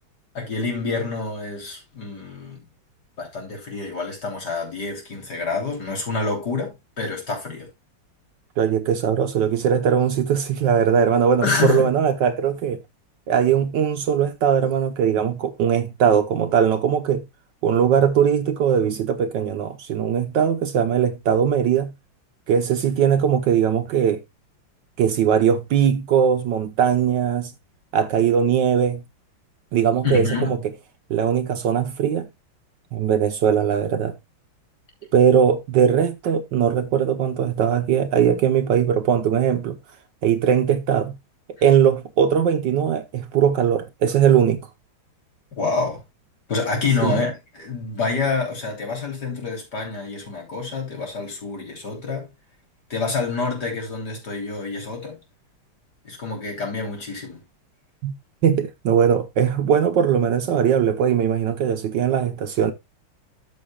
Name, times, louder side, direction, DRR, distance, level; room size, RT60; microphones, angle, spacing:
voice 1, 0.3-2.6 3.2-7.7 11.4-11.9 30.0-30.5 45.5-46.0 46.5-52.3 52.9-55.2 56.1-57.4, left 4 dB, 50° left, 3.9 m, -27 dB
voice 2, 8.6-12.8 13.3-17.3 17.6-21.9 22.5-24.2 25.0-27.5 27.9-29.0 29.7-30.6 31.1-32.3 32.9-34.1 35.1-39.8 40.2-41.2 41.6-44.7 47.0-47.2 58.0-58.1 58.4-62.7, right 8 dB, 65° right, 1.3 m, -20 dB
13.5 x 6.5 x 2.3 m
omnidirectional pair, 2.3 m